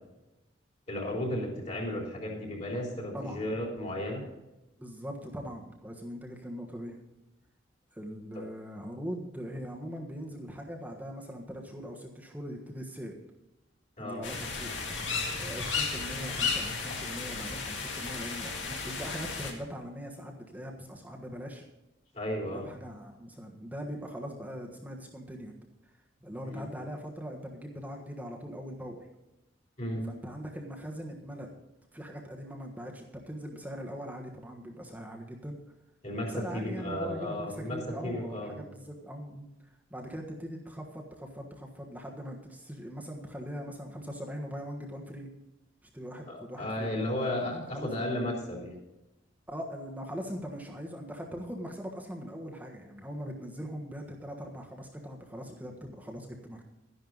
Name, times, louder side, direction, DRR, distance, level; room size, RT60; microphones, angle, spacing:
voice 1, 0.9-4.2 8.4-8.5 14.0-14.2 22.1-22.7 26.5-26.6 29.8-30.0 36.0-37.8 38.0-38.6 46.3-48.8, left 1 dB, 35° left, -1 dB, 3.6 m, -34 dB
voice 2, 3.1-3.5 4.8-7.0 7.9-13.1 14.0-21.6 22.5-25.5 25.8-25.9 26.2-29.1 30.0-31.5 31.9-35.6 36.3-39.5 39.9-45.3 45.8-46.9 47.3-47.9 49.5-56.6, equal, 10° right, 0 dB, 1.3 m, -41 dB
sound 1, 14.2-19.5, left 4 dB, 70° left, 2.2 m, -34 dB
12.5 x 11.0 x 4.0 m, 0.96 s
head